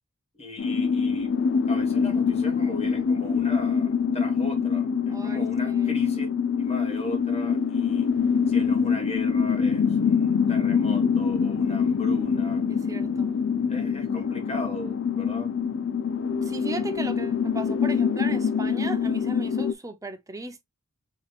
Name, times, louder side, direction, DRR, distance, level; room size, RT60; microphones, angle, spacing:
voice 1, 0.3-1.3 1.7-6.3 6.6-8.1 8.5-12.6 13.7-15.5, left 1 dB, 30° left, 1.6 m, -38 dB
sound 1, 0.6-19.7, left 6 dB, 65° left, 0.5 m, -24 dB
voice 2, 5.1-6.0 12.7-13.4 16.4-20.6, right 2 dB, 15° right, 0.7 m, -37 dB
6.3 x 3.0 x 2.4 m
head